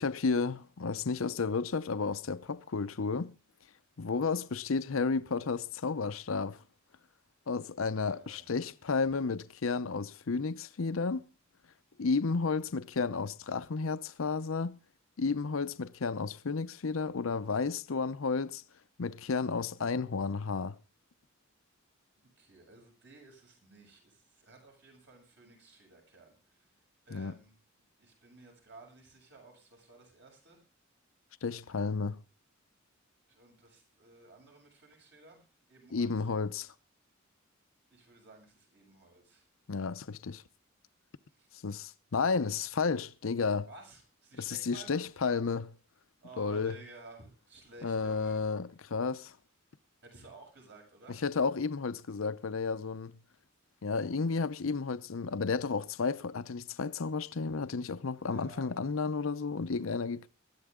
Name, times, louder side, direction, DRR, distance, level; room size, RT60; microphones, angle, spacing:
voice 1, 0.0-3.3 4.0-6.6 7.5-11.2 12.0-14.8 15.2-18.6 19.0-20.8 27.1-27.3 31.4-32.2 35.9-36.7 39.7-40.4 41.6-43.7 44.4-45.7 46.4-46.8 47.8-49.4 51.2-53.1 53.8-60.3, left 4 dB, 85° left, 0.7 m, -32 dB
voice 2, 4.1-4.5 8.1-8.5 22.4-27.6 28.0-30.6 33.3-36.3 37.9-39.5 41.3-41.5 43.7-45.0 46.2-48.4 50.0-51.3 58.2-58.7, right 2 dB, 60° right, 7.6 m, -55 dB
19.5 x 13.5 x 3.7 m
head